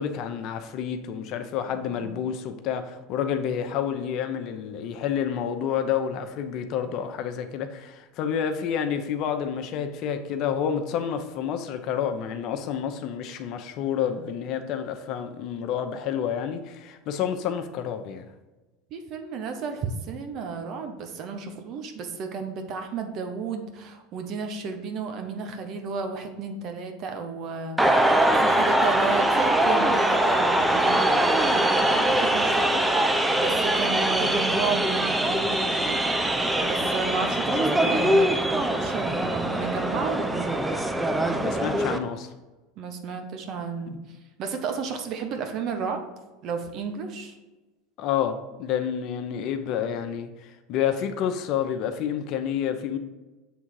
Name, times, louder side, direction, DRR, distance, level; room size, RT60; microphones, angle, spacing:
voice 1, 0.0-18.3 41.4-42.3 43.9-44.0 48.0-53.0, left 8 dB, 55° left, 7 dB, 0.7 m, -29 dB
voice 2, 1.7-2.2 18.9-28.0 28.4-40.6 42.8-43.9 44.4-46.0 46.4-47.4, right 5 dB, 50° right, 6 dB, 1.1 m, -33 dB
sound 1, 27.8-42.0, right 1 dB, 10° right, 0.6 m, -23 dB
7.1 x 3.7 x 4.7 m, 1.2 s
supercardioid pair, 100°, 0 cm